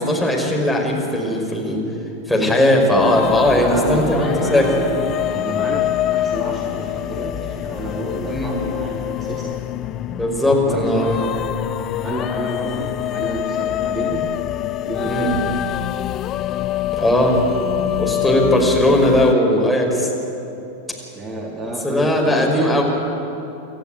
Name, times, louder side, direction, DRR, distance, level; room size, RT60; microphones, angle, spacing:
voice 1, 0.0-1.8 2.3-4.7 8.3-8.5 10.1-11.3 15.1-15.3 16.9-17.4 17.8-20.1 21.8-22.8, left 1 dB, 5° left, -1 dB, 5.3 m, -18 dB
sound 1, 3.0-19.3, left 13 dB, 35° left, 0.5 m, -25 dB
voice 2, 3.5-9.5 10.6-11.3 12.0-14.3 14.8-15.4 21.1-22.8, right 1 dB, 25° right, -1 dB, 3.1 m, -29 dB
27.5 x 13.5 x 9.2 m, 2.9 s
figure-of-eight pair, 90°, 0 cm